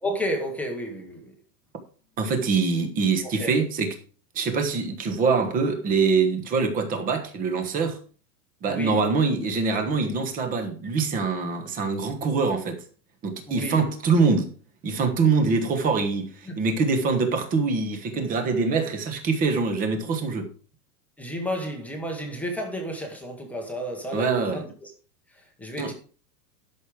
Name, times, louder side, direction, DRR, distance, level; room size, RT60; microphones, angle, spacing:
voice 1, 0.0-1.3 3.2-3.6 8.7-9.0 13.5-13.8 16.5-16.6 21.2-24.9 25.6-25.9, equal, 5° left, 1.1 m, -32 dB
voice 2, 2.2-4.0 4.3-8.0 8.6-12.8 13.2-14.5 14.8-20.5 24.1-24.6 25.8-25.9, right 4 dB, 15° right, 1.2 m, -24 dB
12.0 x 6.5 x 4.8 m
supercardioid pair, 165°, 49 cm